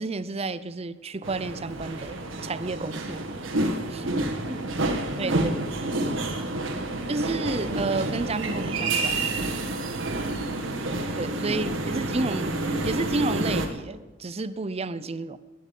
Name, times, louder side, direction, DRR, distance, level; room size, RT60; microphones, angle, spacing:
voice 1, 0.0-3.4 3.9-4.0 5.2-5.3 7.1-9.4 11.2-15.4, right 3 dB, 30° right, 15 dB, 0.6 m, -31 dB
sound 1, 1.2-13.7, right 2 dB, 80° right, 1.8 m, -29 dB
voice 2, 4.0-7.1 11.4-12.4, right 1 dB, 15° right, 2 dB, 1.8 m, -42 dB
20.0 x 9.7 x 5.4 m, 1.2 s
head